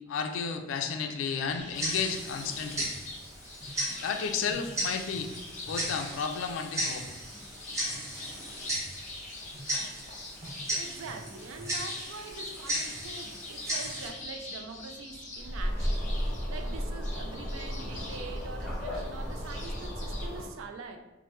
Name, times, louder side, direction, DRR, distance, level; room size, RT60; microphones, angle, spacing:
voice 1, 0.1-2.9 4.0-5.3 5.6-7.1, left 6 dB, 70° left, 6 dB, 0.3 m, -32 dB
sound 1, 1.4-20.3, left 2 dB, 40° left, 0.7 m, -45 dB
Tick-tock, 1.7-14.1, right 1 dB, 15° right, 0.5 m, -36 dB
voice 2, 10.7-21.0, right 4 dB, 80° right, 5 dB, 0.4 m, -44 dB
sound 2, 15.4-20.5, equal, 5° left, 1.0 m, -33 dB
3.0 x 2.1 x 3.1 m, 1.1 s
head